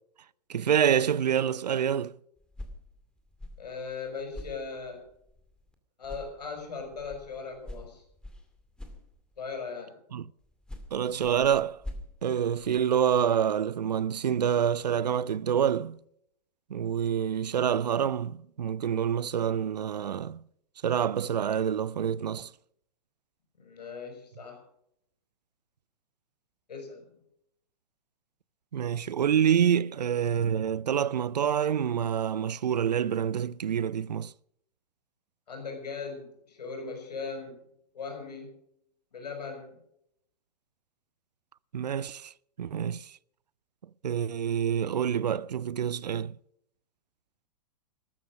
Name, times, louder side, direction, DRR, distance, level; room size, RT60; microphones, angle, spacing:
voice 1, 0.5-2.2 10.1-10.3 10.9-11.8 12.2-16.0 16.7-20.4 20.8-22.5 28.7-34.3 41.7-42.3 42.6-43.2 44.0-46.4, right 8 dB, 80° right, 0.5 m, -27 dB
sound 1, 2.4-5.8 6.0-9.6 10.4-13.1, left 1 dB, 5° left, 2.2 m, -46 dB
voice 2, 3.6-5.0 6.0-8.0 9.4-9.9 23.6-24.6 26.7-27.0 35.5-37.6 37.9-38.5 39.1-39.8, left 4 dB, 80° left, 6.6 m, -39 dB
13.5 x 12.5 x 6.4 m
hypercardioid pair, 110°, 21 cm